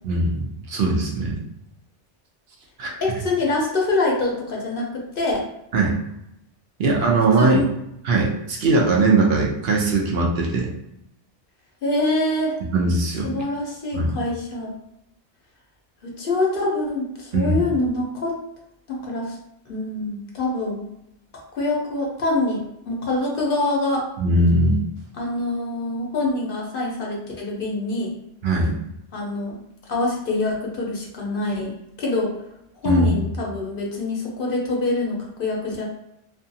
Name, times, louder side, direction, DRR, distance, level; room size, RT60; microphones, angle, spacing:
voice 1, 0.0-1.4 2.8-2.9 5.7-6.0 6.8-7.6 8.0-10.7 12.7-13.3 13.9-14.1 17.3-17.6 24.2-24.8 28.4-28.7 32.8-33.1, right 2 dB, 65° right, -1 dB, 0.8 m, -20 dB
voice 2, 3.0-5.5 7.4-7.7 11.8-12.6 13.2-14.7 16.0-18.4 18.9-19.4 19.7-20.9 21.6-24.1 25.2-28.1 29.1-29.6 29.9-32.3 32.8-35.8, left 2 dB, 55° left, -2 dB, 0.8 m, -25 dB
2.6 x 2.4 x 2.7 m, 0.81 s
omnidirectional pair, 1.2 m